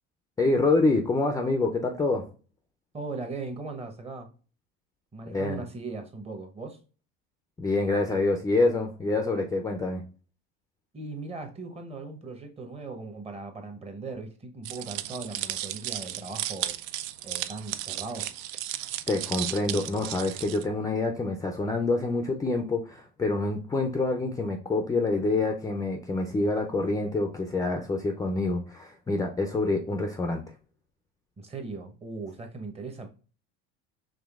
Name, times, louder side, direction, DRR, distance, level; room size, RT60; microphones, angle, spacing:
voice 1, 0.4-2.3 5.3-5.6 7.6-10.0 19.1-30.4, left 2 dB, 10° left, 4 dB, 0.4 m, -26 dB
voice 2, 2.9-4.3 5.1-6.8 10.9-16.8 17.2-18.3 31.4-33.1, right 3 dB, 20° right, 5 dB, 0.8 m, -38 dB
sound 1, 14.6-20.6, right 13 dB, 65° right, 0.4 m, -34 dB
5.0 x 3.2 x 2.3 m, 0.38 s
supercardioid pair, 100°, 29 cm